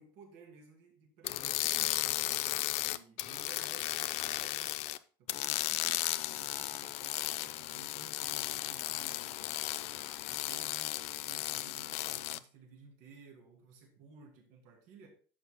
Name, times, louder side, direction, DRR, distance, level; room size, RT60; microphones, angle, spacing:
voice 1, 0.0-2.5 2.8-4.8 5.2-9.6 10.3-11.0 11.3-15.1, right 5 dB, 75° right, 1 dB, 2.6 m, -56 dB
sound 1, 1.2-5.0 5.3-12.4, left 16 dB, 65° left, 0.5 m, -35 dB
11.5 x 6.8 x 2.2 m, 0.42 s
supercardioid pair, 115°, 11 cm